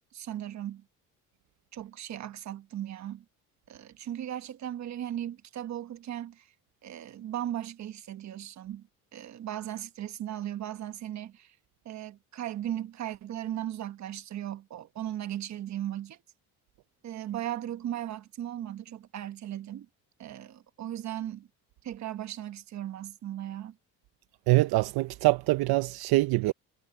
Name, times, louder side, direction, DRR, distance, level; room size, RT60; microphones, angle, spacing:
voice 1, 0.1-0.8 1.7-3.2 3.7-6.5 6.8-11.6 11.8-16.2 17.0-19.9 20.2-21.5 21.8-23.8, right 11 dB, 45° right, 1.3 m, -37 dB
voice 2, 24.5-26.5, right 20 dB, 75° right, 0.8 m, -24 dB
cardioid pair, 135°, 38 cm